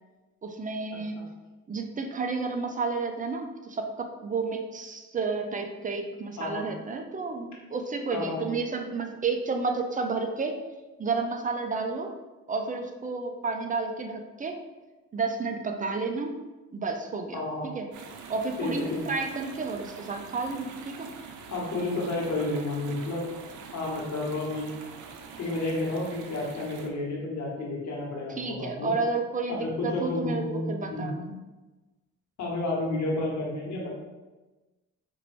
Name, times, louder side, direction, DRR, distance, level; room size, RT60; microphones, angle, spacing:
voice 1, 0.4-1.2 1.7-10.6 11.0-12.1 12.5-14.6 15.1-16.3 16.7-17.9 18.3-21.1 28.4-31.4, right 4 dB, 25° right, 4 dB, 0.5 m, -31 dB
voice 2, 8.1-8.4 17.3-17.7 18.6-19.0 21.5-23.2 23.7-24.7 25.4-28.9 29.5-31.1 32.4-33.9, left 2 dB, 70° left, -3 dB, 1.2 m, -31 dB
sound 1, 17.9-26.9, right 5 dB, 75° right, 0.6 m, -44 dB
4.5 x 2.5 x 3.1 m, 1.2 s
cardioid pair, 90°, 30 cm